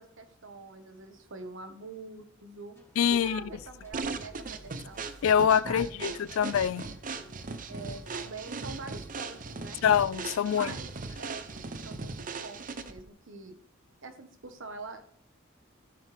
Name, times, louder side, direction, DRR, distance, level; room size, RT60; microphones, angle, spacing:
voice 1, 0.0-2.8 3.2-5.0 5.6-6.4 7.7-9.8 10.4-11.5 11.7-13.6 14.0-15.0, right 3 dB, 65° right, 1.3 m, -45 dB
sound 1, 2.7-12.0, equal, 15° left, 1.9 m, -53 dB
voice 2, 3.0-3.4 5.2-6.9 9.8-10.7, left 8 dB, 75° left, 0.3 m, -25 dB
sound 2, 3.9-13.1, right 4 dB, 40° right, 0.7 m, -38 dB
15.5 x 7.3 x 3.4 m
head